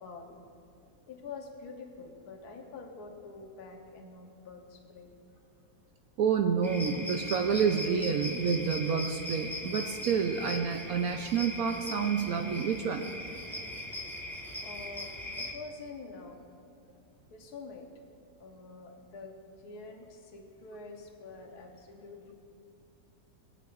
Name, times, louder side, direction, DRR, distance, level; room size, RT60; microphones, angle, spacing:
voice 1, 0.0-0.4 1.1-5.2 14.6-15.1 15.4-16.4 17.3-17.9 18.4-22.3, left 4 dB, 75° left, 2 dB, 1.5 m, -46 dB
voice 2, 6.2-13.1, right 6 dB, 70° right, 5 dB, 1.0 m, -29 dB
sound 1, 6.6-15.5, left 1 dB, ahead, 1.0 m, -39 dB
22.0 x 8.9 x 2.5 m, 2.5 s
omnidirectional pair, 1.7 m